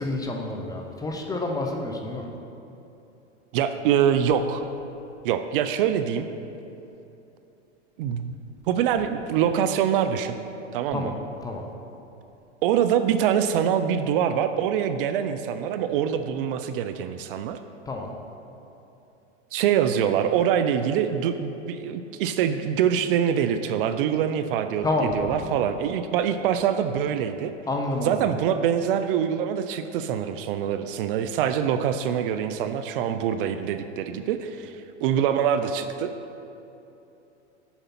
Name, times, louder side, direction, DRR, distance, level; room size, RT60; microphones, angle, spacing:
voice 1, 0.0-2.2 10.9-11.2 11.4-11.7 17.9-18.1 24.8-25.4 27.7-28.2, left 2 dB, 10° left, 1 dB, 0.5 m, -28 dB
voice 2, 3.5-4.6 5.2-6.3 8.0-8.4 8.7-10.3 10.7-11.1 12.6-17.6 19.5-24.9 25.1-27.5 28.0-36.1, right 9 dB, 50° right, 9 dB, 0.5 m, -24 dB
7.1 x 5.2 x 5.8 m, 2.9 s
hypercardioid pair, 120°, 36 cm